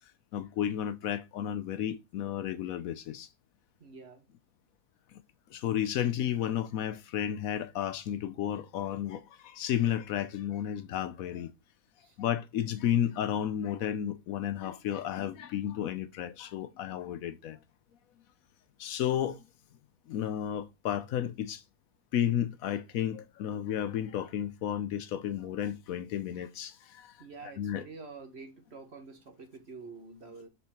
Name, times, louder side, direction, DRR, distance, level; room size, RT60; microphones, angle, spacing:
voice 1, 0.3-3.3 5.5-11.5 12.2-17.6 18.8-19.4 20.1-21.6 22.1-27.2 27.6-27.8, left 10 dB, 75° left, 1.0 m, -32 dB
voice 2, 3.8-4.3 12.0-12.2 27.2-30.5, right 4 dB, 45° right, 1.5 m, -47 dB
5.6 x 4.3 x 4.3 m
omnidirectional pair, 1.6 m